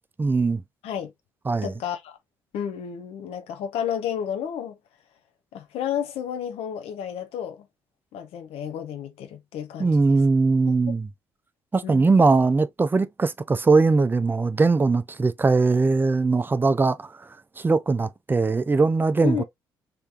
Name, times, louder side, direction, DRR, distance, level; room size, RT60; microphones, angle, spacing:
voice 1, 0.2-0.6 1.5-1.7 9.8-11.1 11.7-17.3 17.6-19.4, right 3 dB, 20° right, 0.5 m, -21 dB
voice 2, 1.6-2.2 2.5-4.8 5.5-7.7 8.1-10.2 10.9-11.0 11.8-12.2 19.2-19.4, left 8 dB, 60° left, 0.8 m, -31 dB
3.3 x 2.9 x 2.4 m
figure-of-eight pair, 50°, 11 cm